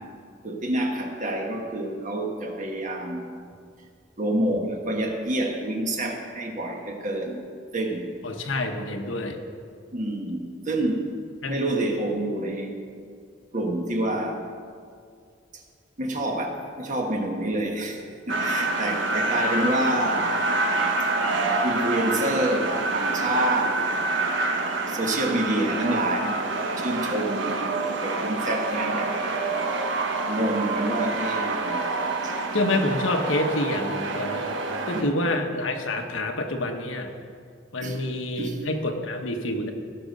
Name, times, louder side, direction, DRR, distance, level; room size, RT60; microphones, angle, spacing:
voice 1, 0.4-3.3 4.2-7.4 7.7-8.1 9.9-11.0 11.4-12.8 13.5-14.4 15.5-15.6 16.0-20.5 21.6-23.8 24.9-29.5 30.3-31.8 32.2-32.4 34.9-35.2 37.8-38.0 38.4-38.6, right 1 dB, 40° right, 2 dB, 1.4 m, -28 dB
voice 2, 8.2-9.4 11.4-11.6 32.5-34.5 34.9-37.1 37.7-39.7, left 1 dB, 85° left, 4 dB, 1.1 m, -27 dB
sound 1, 18.3-35.0, right 3 dB, 65° right, 1.0 m, -27 dB
17.5 x 6.0 x 5.3 m, 2.2 s
head